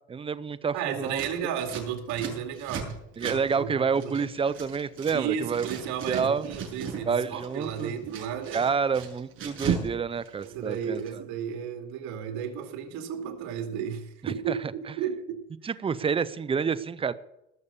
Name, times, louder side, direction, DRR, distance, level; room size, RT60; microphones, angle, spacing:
voice 1, 0.1-1.2 3.2-5.7 6.0-6.5 7.1-7.9 8.5-11.0 14.2-14.6 15.6-17.1, right 6 dB, 20° right, 14 dB, 0.6 m, -28 dB
voice 2, 0.7-4.1 5.1-8.7 10.4-15.4, right 8 dB, 75° right, 4 dB, 2.6 m, -33 dB
Scissors, 1.1-5.2 5.4-7.0 7.3-9.9 10.2-11.1, right 7 dB, 45° right, 6.7 m, -36 dB
19.0 x 7.1 x 6.8 m, 0.87 s
cardioid pair, 130°, 29 cm